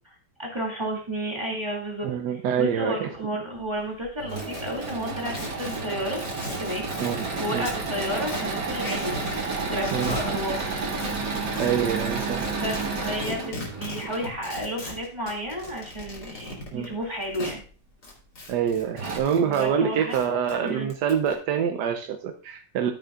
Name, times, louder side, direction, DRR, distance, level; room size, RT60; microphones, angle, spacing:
voice 1, 0.4-6.2 6.6-6.9 7.4-9.1 9.4-10.8 12.5-12.8 13.0-17.6 19.3-20.2 20.6-20.9, equal, 15° right, -2 dB, 2.5 m, -32 dB
voice 2, 2.0-3.1 7.0-7.3 7.5-7.7 9.9-10.2 11.6-12.4 16.7-16.9 18.5-22.9, right 8 dB, 70° right, 6 dB, 1.2 m, -26 dB
Engine / Mechanisms, 4.0-14.3 15.9-16.6 17.2-17.3 17.6-17.7 18.6-18.7 19.0-19.2, right 3 dB, 50° right, 2.3 m, -31 dB
sound 1, 4.3-7.8 8.1-9.5 9.8-10.6 11.0-17.6 18.0-19.7 20.0-21.3, left 2 dB, 60° left, 3.2 m, -38 dB
13.5 x 7.7 x 2.4 m, 0.39 s
omnidirectional pair, 1.9 m